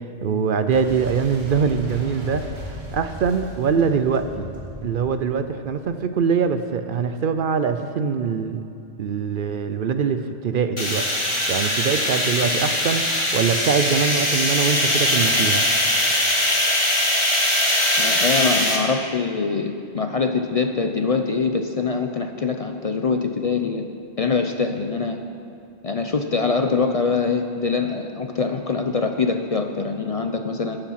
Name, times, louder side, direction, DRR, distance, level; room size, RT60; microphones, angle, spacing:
voice 1, 0.2-4.4 4.8-8.6 9.0-11.1 11.5-15.6, right 6 dB, 60° right, 9 dB, 0.7 m, -23 dB
Boom, 0.7-6.3, equal, 45° right, 2.5 m, -38 dB
sound 1, 10.8-18.8, left 1 dB, 25° left, 1.7 m, -21 dB
voice 2, 18.0-23.8 24.2-25.2 25.8-30.8, left 4 dB, 45° left, 5 dB, 0.5 m, -23 dB
19.0 x 6.8 x 5.7 m, 2.5 s
omnidirectional pair, 1.1 m